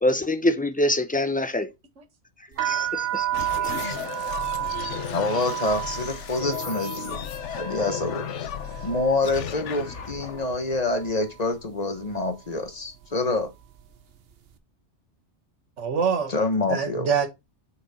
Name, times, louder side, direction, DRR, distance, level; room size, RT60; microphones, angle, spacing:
voice 1, 0.0-1.7 2.6-3.3 3.6-3.7, left 1 dB, 10° left, 0.4 m, -25 dB
sound 1, 2.5-10.4 10.7-11.4 12.0-12.3 12.6-14.0, right 13 dB, 60° right, 0.9 m, -32 dB
sound 2, 3.3-11.5, left 9 dB, 85° left, 1.1 m, -35 dB
voice 2, 4.0-4.7 15.8-16.3 16.7-17.3, right 6 dB, 90° right, 1.6 m, -26 dB
voice 3, 5.1-8.3 8.8-13.5 16.3-17.1, left 2 dB, 35° left, 1.2 m, -27 dB
6.5 x 4.4 x 4.2 m
omnidirectional pair, 1.2 m